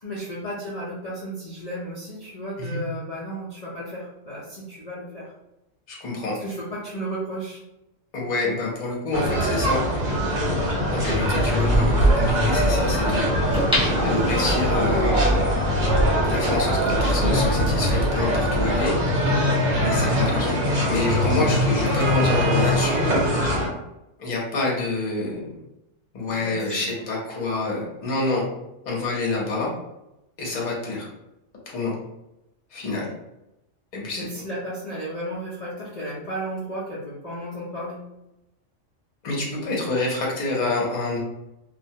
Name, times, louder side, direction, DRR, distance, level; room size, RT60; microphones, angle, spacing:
voice 1, 0.0-5.3 6.4-7.6 26.3-26.9 34.2-38.0, right 1 dB, 65° left, -7 dB, 0.3 m, -34 dB
voice 2, 5.9-6.3 8.1-9.8 10.9-13.3 14.0-15.2 16.3-18.9 19.8-20.6 20.9-23.0 24.2-25.6 26.1-28.4 28.9-29.7 30.4-31.1 31.7-31.9 32.7-33.1 33.9-34.3 39.2-41.2, left 2 dB, 45° left, -3 dB, 0.7 m, -27 dB
sound 1, 9.1-23.7, equal, 45° right, 0.7 m, -23 dB
sound 2, 9.3-18.9, right 1 dB, 85° right, 1.1 m, -25 dB
sound 3, 9.9-10.0 13.5-14.9 15.4-15.5, left 1 dB, 5° right, 0.6 m, -26 dB
2.2 x 2.1 x 2.7 m, 0.90 s
omnidirectional pair, 1.3 m